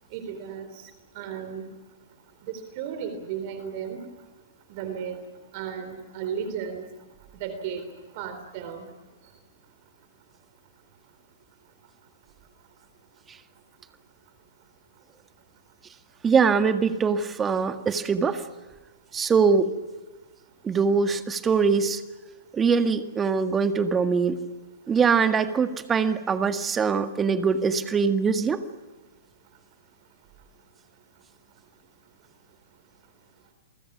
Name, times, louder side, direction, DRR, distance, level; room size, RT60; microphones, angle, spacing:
voice 1, 0.1-0.7 1.2-1.7 2.4-4.0 4.7-5.2 5.5-6.9 7.4-7.9 8.2-8.9, right 7 dB, 45° right, 9 dB, 3.8 m, -34 dB
voice 2, 16.2-18.4 19.1-19.7 20.6-22.0 22.5-24.4 24.9-28.6, right 5 dB, 15° right, 8 dB, 1.8 m, -22 dB
30.0 x 23.5 x 6.2 m, 1.3 s
hypercardioid pair, 120°, 0 cm